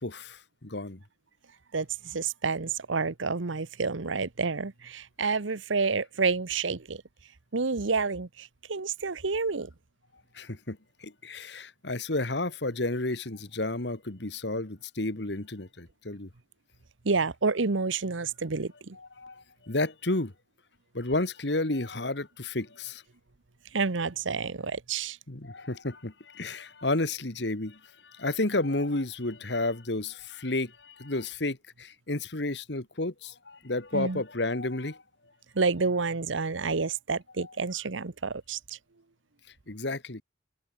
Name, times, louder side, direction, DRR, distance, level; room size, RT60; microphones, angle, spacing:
voice 1, 0.0-1.0 10.3-16.3 19.0-20.3 20.9-23.0 25.3-35.0 37.4-37.5 39.7-40.2, left 2 dB, 60° left, 1.9 m, -32 dB
voice 2, 1.7-7.0 7.5-9.7 17.0-19.0 23.7-25.2 33.9-34.2 35.5-38.8, right 4 dB, 90° right, 1.0 m, -29 dB
head